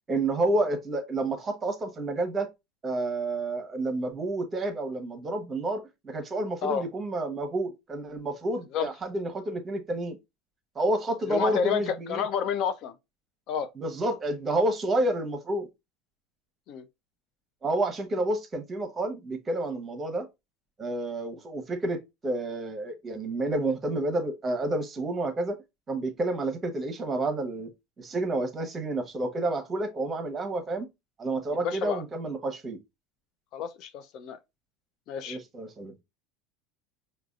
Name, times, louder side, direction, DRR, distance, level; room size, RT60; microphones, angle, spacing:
voice 1, 0.1-2.5 2.8-10.2 10.7-12.2 13.8-15.7 17.6-20.3 20.8-25.6 25.9-27.7 28.0-30.9 31.2-32.8 35.3-36.0, right 2 dB, 25° right, 0.9 m, -29 dB
voice 2, 11.3-12.9 13.5-13.7 16.7-16.8 31.5-32.0 33.5-34.4 35.1-35.4, left 7 dB, 55° left, 0.5 m, -30 dB
4.7 x 2.3 x 2.4 m
hypercardioid pair, 80°, 0 cm